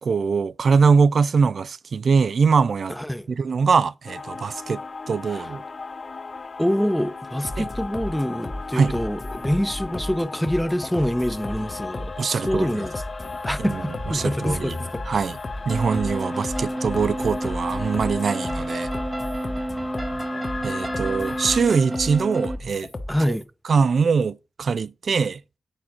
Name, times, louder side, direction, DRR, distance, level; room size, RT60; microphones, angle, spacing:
voice 1, 0.0-2.9 3.3-4.8 5.1-5.6 7.6-7.7 8.7-8.9 12.2-12.7 13.6-13.7 14.1-14.8 15.1-15.4 15.7-18.9 20.6-22.9 23.3-23.4 23.7-25.4, right 5 dB, 65° right, 0.3 m, -22 dB
voice 2, 2.9-3.3 5.3-5.5 6.6-12.9 13.4-15.0 23.1-23.4, equal, 5° left, 0.8 m, -26 dB
sound 1, 4.1-21.6, left 4 dB, 50° left, 0.6 m, -37 dB
sound 2, 7.4-23.4, left 1 dB, 30° left, 1.2 m, -35 dB
sound 3, 15.7-22.6, right 1 dB, 25° right, 0.9 m, -30 dB
8.6 x 4.3 x 6.0 m
cardioid pair, 75°, 0 cm